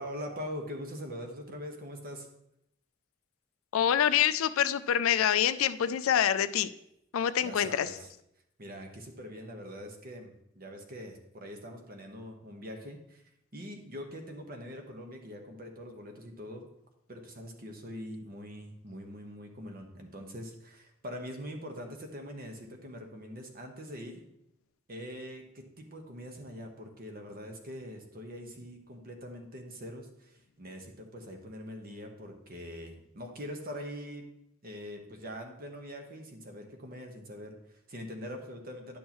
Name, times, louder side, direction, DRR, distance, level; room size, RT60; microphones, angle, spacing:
voice 1, 0.0-2.3 7.4-8.1 8.6-13.2 13.5-16.7 17.1-24.2 24.9-34.3 34.6-39.0, equal, 45° right, 4 dB, 1.2 m, -43 dB
voice 2, 3.7-6.7 7.1-7.9, left 9 dB, 75° left, 13 dB, 0.4 m, -26 dB
10.0 x 6.3 x 3.0 m, 0.79 s
head